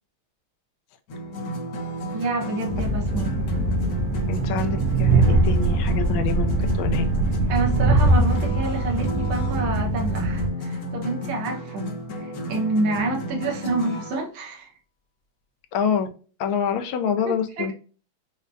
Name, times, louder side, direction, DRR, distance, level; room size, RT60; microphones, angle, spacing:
sound 1, 1.1-14.2, equal, 60° left, 1.0 m, -32 dB
voice 1, 2.1-3.4 7.5-14.7 17.2-17.7, right 2 dB, 70° right, 1 dB, 1.7 m, -28 dB
Train, 2.7-10.5, right 2 dB, 90° right, 1.6 m, -22 dB
voice 2, 4.3-6.5 6.8-7.0 15.7-16.1 16.4-17.7, left 7 dB, 80° left, 6 dB, 1.4 m, -26 dB
4.8 x 2.1 x 2.5 m, 0.38 s
omnidirectional pair, 2.3 m